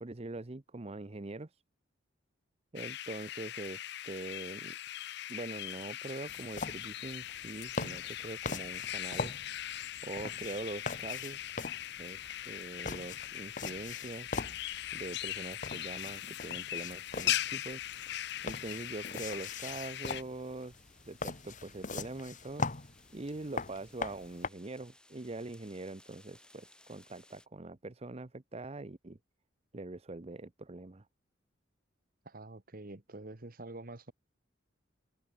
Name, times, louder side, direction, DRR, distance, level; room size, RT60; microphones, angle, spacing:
voice 1, 0.0-1.6 2.7-4.8 5.3-9.3 10.0-11.7 12.0-14.3 14.9-17.8 18.4-20.7 21.0-22.6 23.1-29.2 29.7-31.0, right 2 dB, 30° right, 0.8 m, -43 dB
sound 1, 2.8-20.2, left 12 dB, 60° left, 0.8 m, -40 dB
sound 2, 6.3-24.5, left 4 dB, 40° left, 1.6 m, -42 dB
sound 3, 17.2-27.5, left 1 dB, 5° left, 4.1 m, -64 dB
voice 2, 32.2-34.1, right 2 dB, 50° right, 1.5 m, -46 dB
head